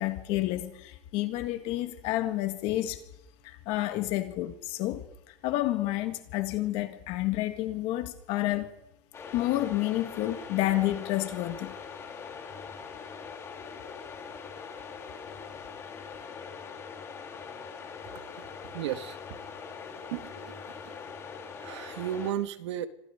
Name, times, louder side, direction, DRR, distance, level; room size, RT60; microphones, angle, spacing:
voice 1, 0.0-3.0 3.4-8.7 9.3-11.7, left 15 dB, 40° left, 1.8 m, -30 dB
sound 1, 9.1-22.3, left 6 dB, 15° left, 3.6 m, -42 dB
voice 2, 18.4-19.4 20.1-21.0 21.6-22.9, right 10 dB, 75° right, 2.1 m, -35 dB
29.0 x 26.0 x 5.2 m
supercardioid pair, 170°, 15 cm